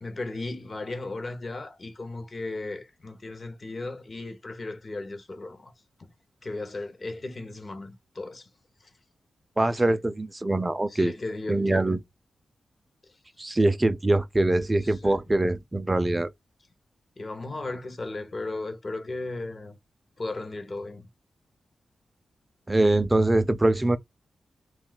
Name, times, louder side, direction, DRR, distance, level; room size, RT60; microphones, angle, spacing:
voice 1, 0.0-5.7 6.0-6.1 6.4-8.5 8.8-8.9 9.9-10.0 10.9-12.0 14.8-15.2 17.2-19.7 20.2-21.1, left 2 dB, 45° left, 0.7 m, -36 dB
voice 2, 9.6-11.1 11.5-12.0 13.4-16.3 22.7-24.0, right 2 dB, 20° right, 0.4 m, -23 dB
2.3 x 2.2 x 3.8 m
cardioid pair, 65°, 0 cm